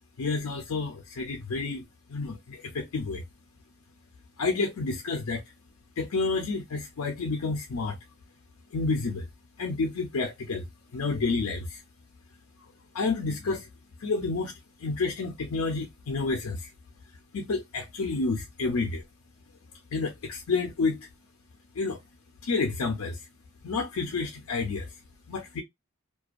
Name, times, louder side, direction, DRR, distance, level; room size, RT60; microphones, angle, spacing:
voice 1, 0.2-1.8 2.1-3.2 4.4-5.4 6.0-8.0 8.7-9.3 9.6-10.7 10.9-11.8 12.9-13.7 14.0-14.5 14.8-16.7 17.3-19.0 19.9-21.1 21.8-22.0 22.4-23.2 23.6-24.9 25.3-25.6, left 3 dB, 75° left, 0.5 m, -29 dB
2.4 x 2.2 x 2.3 m
head